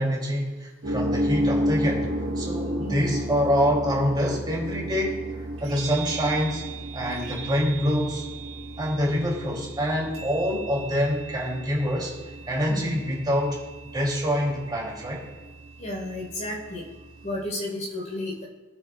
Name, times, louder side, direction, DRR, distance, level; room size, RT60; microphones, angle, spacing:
voice 1, 0.0-2.0 2.3-6.6 6.9-8.3 8.8-12.1 12.5-13.6 13.9-15.2, equal, 20° right, -3 dB, 3.1 m, -26 dB
sound 1, 0.8-17.5, right 1 dB, 65° right, 1.7 m, -33 dB
voice 2, 12.7-13.0 15.8-16.9 17.2-18.5, left 1 dB, 40° left, -2 dB, 4.3 m, -32 dB
24.5 x 9.4 x 2.5 m, 1.2 s
head